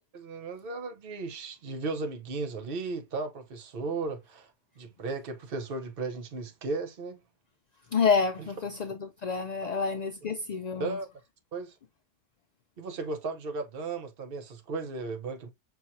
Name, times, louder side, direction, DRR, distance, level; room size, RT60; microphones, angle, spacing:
voice 1, 0.1-4.5 4.8-7.2 8.4-8.5 9.6-9.7 10.8-11.1 11.5-11.7 12.8-15.5, right 3 dB, 50° right, 1.1 m, -35 dB
voice 2, 7.9-11.0, left 5 dB, 65° left, 0.4 m, -28 dB
5.9 x 2.9 x 2.6 m
omnidirectional pair, 1.2 m